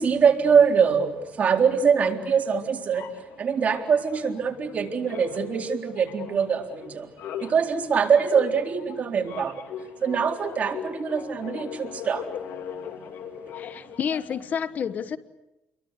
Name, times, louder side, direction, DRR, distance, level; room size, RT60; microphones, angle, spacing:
voice 1, 0.0-3.1 3.4-7.1 7.4-9.7 10.0-12.3 12.7-12.8, right 6 dB, 45° right, 3 dB, 4.0 m, -23 dB
sound 1, 2.9-4.8 5.0-14.6, left 8 dB, 80° left, 2.7 m, -39 dB
voice 2, 13.5-15.2, left 7 dB, 50° left, 13 dB, 1.2 m, -29 dB
30.0 x 23.0 x 8.3 m, 0.93 s
cardioid pair, 105°, 4 cm